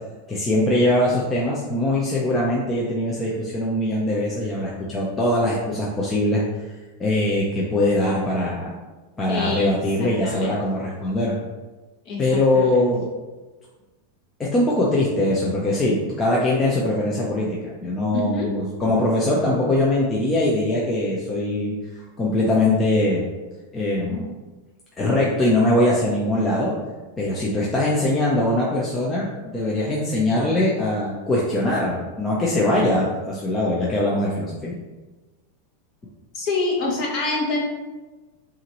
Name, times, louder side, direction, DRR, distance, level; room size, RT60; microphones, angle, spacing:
voice 1, 0.3-6.4 7.0-8.7 9.2-11.3 12.2-13.1 14.5-21.7 22.2-23.2 23.7-24.3 25.0-26.7 27.2-34.8, left 1 dB, 15° left, -5 dB, 0.6 m, -22 dB
voice 2, 9.3-10.6 12.1-12.7 18.1-18.5 36.3-37.6, left 3 dB, 35° left, -2 dB, 1.1 m, -26 dB
5.8 x 2.5 x 3.0 m, 1.2 s
supercardioid pair, 155°, 0 cm